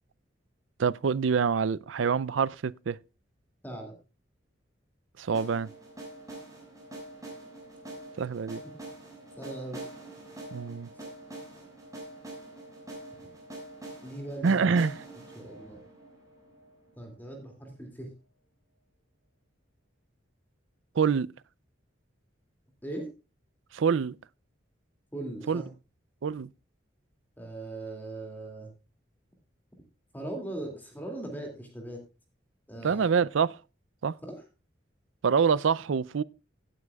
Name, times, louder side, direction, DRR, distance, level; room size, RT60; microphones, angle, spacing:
voice 1, 0.8-3.0 5.2-5.7 8.2-8.6 10.5-10.9 14.4-15.1 21.0-21.3 23.7-24.2 25.5-25.6 26.2-26.5 32.8-33.6 34.0-34.1 35.2-36.2, right 6 dB, 80° right, 0.4 m, -26 dB
voice 2, 3.6-3.9 9.4-9.8 10.9-11.0 14.0-14.5 15.3-15.9 17.0-18.1 22.8-23.1 25.1-25.7 27.4-28.7 30.1-32.0 32.7-33.1 34.2-34.4, right 2 dB, 10° left, 2.3 m, -39 dB
sound 1, 5.3-17.2, right 1 dB, 15° right, 5.6 m, -45 dB
16.5 x 9.6 x 2.3 m
head